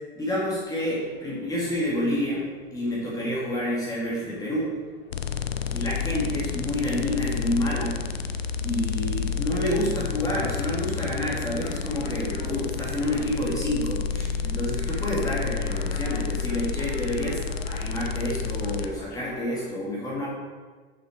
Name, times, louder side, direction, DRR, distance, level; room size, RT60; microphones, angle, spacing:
voice 1, 0.2-2.4 2.7-4.7 5.7-8.0 8.6-20.3, left 1 dB, 10° left, -7 dB, 2.0 m, -29 dB
sound 1, 0.6-19.7, left 1 dB, 35° left, 1.7 m, -49 dB
sound 2, 5.1-18.9, left 6 dB, 75° left, 0.5 m, -30 dB
6.8 x 5.9 x 4.6 m, 1.5 s
figure-of-eight pair, 90°, 31 cm